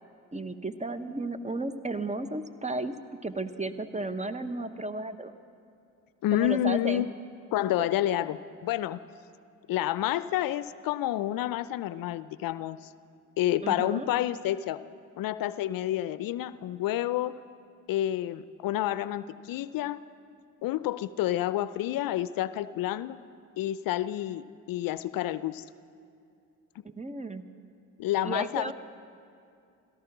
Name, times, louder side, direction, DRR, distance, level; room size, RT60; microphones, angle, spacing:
voice 1, 0.3-3.0 3.2-5.3 6.3-7.1 13.6-14.1 27.0-27.5 28.2-28.7, right 2 dB, 20° right, 11 dB, 0.9 m, -33 dB
voice 2, 6.2-7.1 7.5-9.0 9.7-12.8 13.4-14.8 15.2-17.3 17.9-20.0 20.6-23.2 23.6-25.6 28.0-28.7, left 13 dB, 65° left, 16 dB, 0.5 m, -29 dB
17.0 x 13.5 x 6.0 m, 2.5 s
hypercardioid pair, 50°, 37 cm